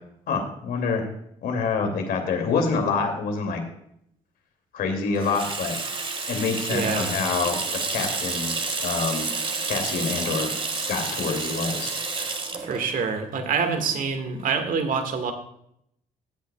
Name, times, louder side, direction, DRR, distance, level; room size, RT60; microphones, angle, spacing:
voice 1, 0.3-1.1 1.4-3.6 4.7-5.8 6.3-7.6 7.9-8.5 8.8-9.3 9.7-10.6 10.9-11.9, left 4 dB, 70° left, 3 dB, 2.7 m, -26 dB
Water tap faucet / Sink (filling or washing), 5.1-14.5, right 3 dB, 35° right, 1.8 m, -30 dB
voice 2, 6.7-7.1 12.6-15.3, right 5 dB, 60° right, 7 dB, 1.8 m, -26 dB
16.0 x 8.3 x 2.4 m, 0.71 s
supercardioid pair, 60°, 16 cm